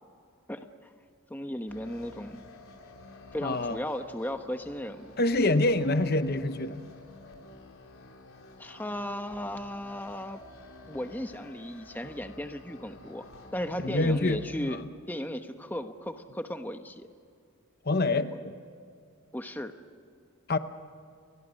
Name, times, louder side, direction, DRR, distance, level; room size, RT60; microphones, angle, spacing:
voice 1, 1.3-2.4 3.3-5.1 8.6-10.4 10.9-13.2 13.5-14.8 15.1-17.1 19.3-19.7, equal, 10° left, 7 dB, 1.0 m, -36 dB
sound 1, 1.7-14.5, left 2 dB, 65° left, 4.1 m, -51 dB
voice 2, 3.4-3.8 5.2-6.9 13.8-14.9 17.8-18.5 20.5-20.6, left 2 dB, 45° left, 10 dB, 0.9 m, -26 dB
30.0 x 22.0 x 6.4 m, 2.3 s
head